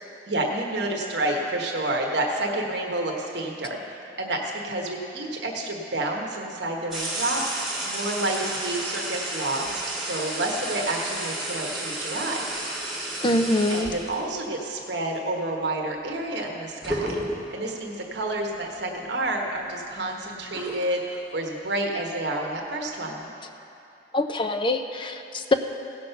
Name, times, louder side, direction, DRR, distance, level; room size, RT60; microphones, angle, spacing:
voice 1, 0.3-3.8 4.2-12.5 13.7-17.2 17.5-23.3, right 1 dB, 60° right, 0 dB, 1.3 m, -29 dB
sound 1, 6.9-14.3 16.4-16.5 16.8-17.7 18.3-18.5 18.9-20.9, right 1 dB, ahead, 2.0 m, -32 dB
voice 2, 13.2-13.9 24.1-25.5, left 2 dB, 25° left, 7 dB, 0.5 m, -24 dB
17.0 x 6.4 x 5.8 m, 2.8 s
head